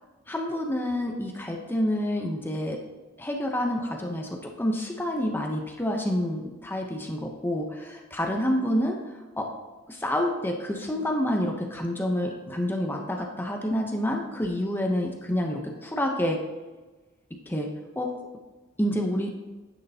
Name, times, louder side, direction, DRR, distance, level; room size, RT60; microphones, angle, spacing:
voice 1, 0.3-2.8 3.2-4.3 4.6-9.0 9.4-9.5 10.0-16.4 17.5-17.7 18.0-18.1 18.8-19.3, equal, 10° left, 2 dB, 0.7 m, -28 dB
10.0 x 6.4 x 2.8 m, 1.2 s
head